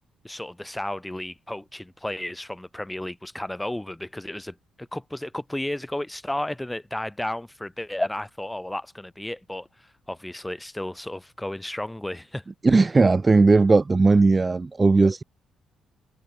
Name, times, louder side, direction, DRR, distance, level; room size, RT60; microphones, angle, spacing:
voice 1, 0.2-12.4 15.0-15.1, left 1 dB, 10° left, 4.8 m, -33 dB
voice 2, 12.6-15.2, right 3 dB, 25° right, 0.6 m, -18 dB
cardioid pair, 90°, 0 cm